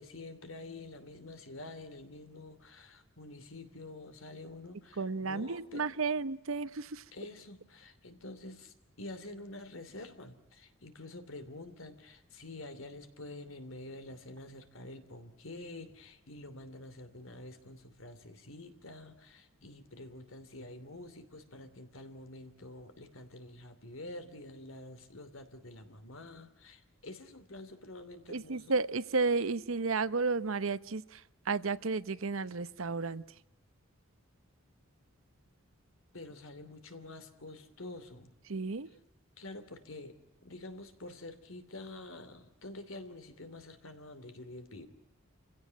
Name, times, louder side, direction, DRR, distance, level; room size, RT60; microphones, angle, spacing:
voice 1, 0.0-5.8 7.1-28.8 36.1-38.3 39.4-44.9, left 2 dB, 70° left, 9 dB, 2.9 m, -48 dB
voice 2, 5.0-7.0 28.3-33.2 38.5-38.9, right 4 dB, 75° right, 16 dB, 0.9 m, -32 dB
28.0 x 16.5 x 9.5 m, 0.92 s
head